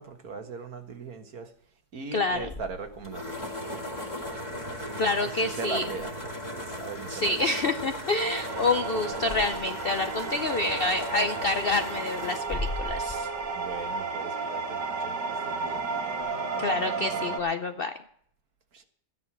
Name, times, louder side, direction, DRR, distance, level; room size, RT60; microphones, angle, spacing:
voice 1, 0.0-1.5 1.9-7.4 13.5-15.9 18.7-18.9, right 4 dB, 60° right, 1.9 m, -40 dB
voice 2, 2.1-2.5 5.0-5.8 7.1-13.3 16.6-17.9, left 2 dB, 60° left, 0.6 m, -28 dB
sound 1, 2.3-14.2, left 1 dB, 25° left, 2.2 m, -37 dB
sound 2, 8.2-17.4, right 4 dB, 75° right, 2.1 m, -33 dB
13.5 x 10.0 x 6.1 m
omnidirectional pair, 1.8 m